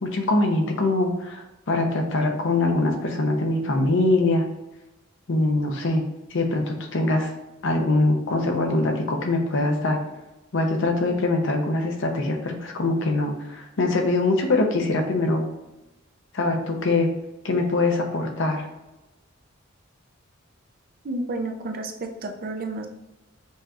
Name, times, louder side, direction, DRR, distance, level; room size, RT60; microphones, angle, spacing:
voice 1, 0.0-4.4 5.3-6.0 6.3-7.3 7.6-10.0 10.5-15.4 16.3-17.1 17.4-18.7, left 2 dB, 65° left, 3 dB, 0.7 m, -23 dB
voice 2, 21.0-22.9, right 2 dB, 45° right, 4 dB, 0.5 m, -31 dB
5.5 x 2.9 x 2.4 m, 1.0 s
head